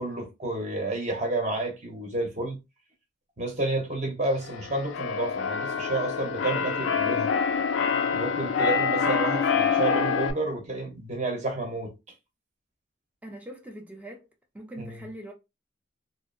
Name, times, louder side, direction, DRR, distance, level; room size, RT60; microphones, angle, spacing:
voice 1, 0.0-2.6 3.4-7.3 8.1-11.9 14.8-15.0, right 2 dB, 40° right, 0.7 m, -30 dB
Keyboard (musical), 4.4-10.3, left 6 dB, 85° left, 0.4 m, -26 dB
voice 2, 13.2-14.2 14.5-15.3, right 1 dB, 10° right, 0.4 m, -42 dB
2.6 x 2.0 x 2.5 m
head